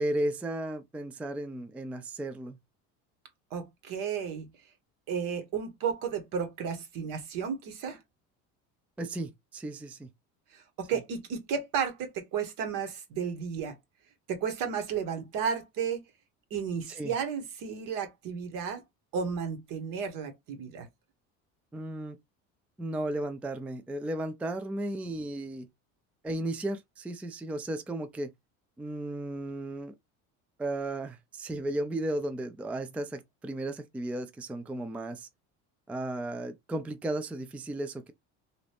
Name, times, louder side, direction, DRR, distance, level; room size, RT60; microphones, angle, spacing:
voice 1, 0.0-2.6 9.0-10.1 16.9-17.1 21.7-22.2 22.8-25.7 26.2-28.3 28.8-29.9 30.6-35.3 35.9-38.1, right 1 dB, 5° right, 0.3 m, -34 dB
voice 2, 3.5-4.5 5.1-8.0 10.5-13.8 14.3-16.0 16.5-18.8 19.1-20.9, right 7 dB, 65° right, 1.2 m, -33 dB
2.9 x 2.6 x 3.3 m
supercardioid pair, 105°, 35 cm